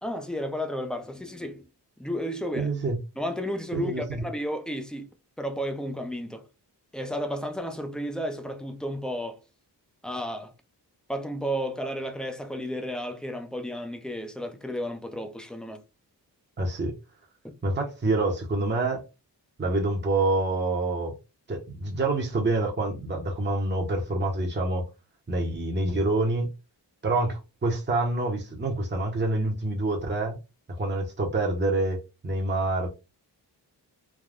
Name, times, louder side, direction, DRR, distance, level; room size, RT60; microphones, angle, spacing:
voice 1, 0.0-1.6 2.0-2.7 3.2-5.1 5.4-6.5 6.9-9.4 10.0-10.5 11.1-15.8, equal, ahead, 0.5 m, -32 dB
voice 2, 2.6-3.0 3.7-4.2 16.6-16.9 17.6-19.0 19.6-21.1 21.5-24.8 25.3-26.5 27.0-30.4 30.8-32.9, right 2 dB, 25° right, 0.8 m, -27 dB
3.4 x 2.2 x 2.4 m
cardioid pair, 70°, 42 cm